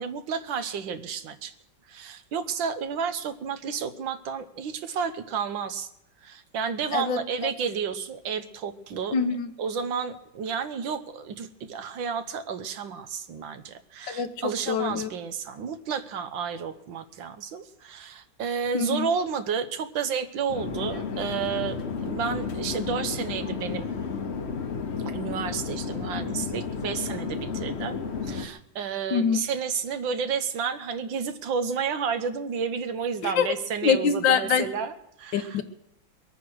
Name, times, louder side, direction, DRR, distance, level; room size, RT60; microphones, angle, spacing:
voice 1, 0.0-1.5 1.9-5.9 6.2-9.2 9.6-23.9 25.1-35.6, right 6 dB, 80° right, 10 dB, 1.7 m, -31 dB
voice 2, 9.1-9.5 14.1-15.1 18.7-19.1 29.1-29.4 33.2-33.5 33.8-34.7 35.3-35.6, left 6 dB, 80° left, 9 dB, 1.7 m, -24 dB
Conversation / Chatter / Fixed-wing aircraft airplane, 20.5-28.5, left 5 dB, 45° left, 1.0 m, -32 dB
22.5 x 9.1 x 6.3 m, 0.82 s
omnidirectional pair, 2.0 m